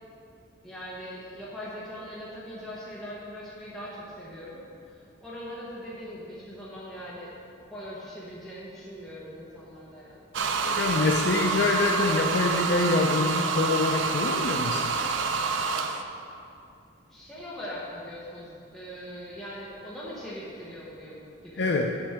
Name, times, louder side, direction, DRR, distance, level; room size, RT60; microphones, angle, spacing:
voice 1, 0.6-7.3 7.7-10.2 17.1-21.8, equal, ahead, -8 dB, 1.0 m, -41 dB
sound 1, 10.3-16.0, right 4 dB, 75° right, 0.5 m, -27 dB
voice 2, 10.6-14.9 21.6-22.0, left 3 dB, 60° left, 2 dB, 0.4 m, -25 dB
7.2 x 7.1 x 4.8 m, 2.6 s
head